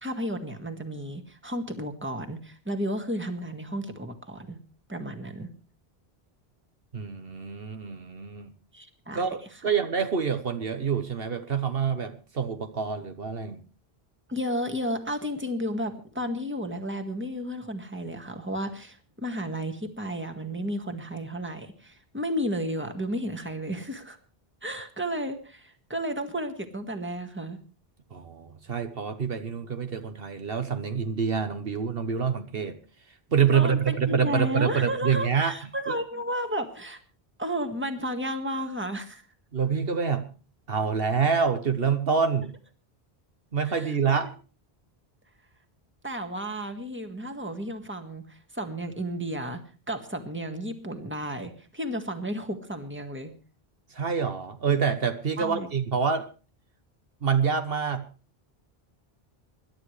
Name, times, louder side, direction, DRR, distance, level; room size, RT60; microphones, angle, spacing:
voice 1, 0.0-4.6 4.9-5.5 8.7-9.3 9.5-9.6 14.3-24.2 24.6-27.6 33.5-37.0 37.4-39.2 43.6-44.2 46.0-53.3 55.4-55.7, equal, 10° right, 6 dB, 1.7 m, -33 dB
voice 2, 6.9-8.5 9.1-13.6 28.1-32.7 33.3-35.5 35.9-36.0 39.5-40.3 40.7-42.5 43.5-44.3 53.9-56.3 57.2-58.0, right 6 dB, 65° right, 8 dB, 1.3 m, -26 dB
26.0 x 12.0 x 3.3 m, 0.36 s
omnidirectional pair, 1.1 m